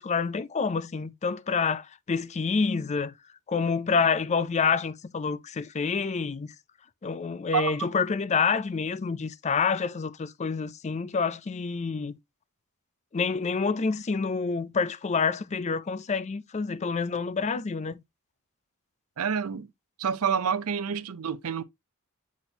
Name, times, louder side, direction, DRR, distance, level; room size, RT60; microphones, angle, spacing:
voice 1, 0.0-3.1 3.5-6.5 7.0-12.2 13.1-18.0, left 5 dB, 30° left, 0.4 m, -28 dB
voice 2, 7.5-7.9 19.2-19.7 20.0-21.6, right 7 dB, 80° right, 0.5 m, -28 dB
8.3 x 4.3 x 2.8 m
head